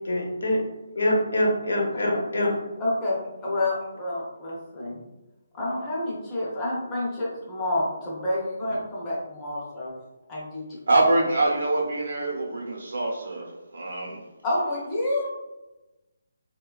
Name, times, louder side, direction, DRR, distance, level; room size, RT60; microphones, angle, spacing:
voice 1, 0.0-0.6 0.9-2.5, left 1 dB, 70° left, -1 dB, 0.8 m, -24 dB
voice 2, 2.8-3.2 3.4-5.0 5.5-9.9 10.3-10.6 14.4-15.3, left 1 dB, 10° left, -7 dB, 0.6 m, -28 dB
voice 3, 10.9-14.2, right 2 dB, 65° right, -1 dB, 0.7 m, -24 dB
3.0 x 2.2 x 2.3 m, 1.0 s
hypercardioid pair, 175°, 0 cm